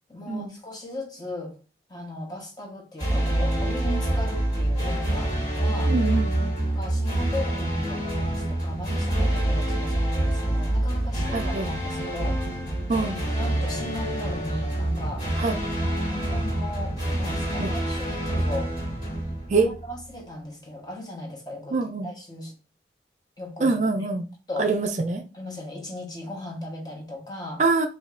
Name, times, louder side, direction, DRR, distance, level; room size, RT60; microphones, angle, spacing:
voice 1, 0.1-1.5 1.9-5.9 6.7-12.4 13.4-15.3 15.8-18.7 19.5-21.8 22.0-22.5 23.4-23.9 24.5-24.7 25.3-27.6, left 1 dB, 20° left, 1.1 m, -37 dB
sound 1, 3.0-20.0, right 1 dB, 45° left, 2.1 m, -26 dB
voice 2, 5.9-6.5 11.3-11.7 12.9-13.2 15.4-15.6 17.6-17.7 19.5-19.7 21.7-22.1 23.6-24.2 24.6-25.2 27.6-27.9, right 3 dB, 40° right, 0.3 m, -24 dB
5.0 x 2.7 x 2.5 m
head